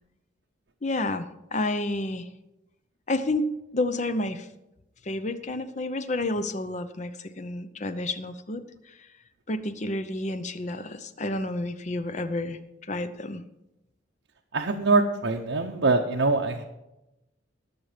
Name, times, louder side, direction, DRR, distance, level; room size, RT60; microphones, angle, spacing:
voice 1, 0.8-2.3 3.1-4.5 5.0-8.6 9.5-12.6 12.9-13.4, left 2 dB, 40° left, 11 dB, 0.7 m, -30 dB
voice 2, 14.5-16.6, right 3 dB, 80° right, 1 dB, 0.9 m, -23 dB
19.5 x 6.6 x 5.1 m, 0.94 s
head